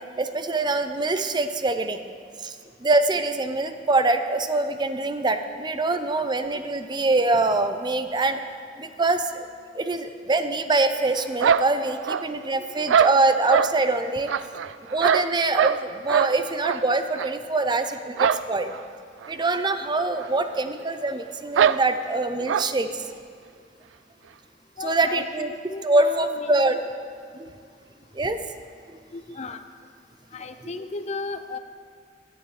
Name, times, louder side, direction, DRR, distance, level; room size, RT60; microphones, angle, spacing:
voice 1, 0.2-2.0 2.4-2.5 2.8-8.4 8.8-9.5 9.7-14.3 14.9-18.7 19.3-23.0 24.8-25.5 25.8-26.8 27.3-27.5 28.1-28.4, right 2 dB, 25° right, 8 dB, 0.5 m, -24 dB
voice 2, 5.9-6.3 24.8-26.8 29.1-29.6 30.3-31.6, left 3 dB, 35° left, 9 dB, 0.5 m, -35 dB
sound 1, 11.4-12.5 12.9-13.7 14.3-15.8 16.1-16.3 16.6-16.8 17.2-17.3 18.2-18.5 18.7-18.8 19.2-19.3 20.2-20.3 20.5-20.6 21.6-21.8 22.5-22.7, right 7 dB, 80° right, 0.3 m, -22 dB
17.0 x 11.0 x 3.3 m, 2.2 s
head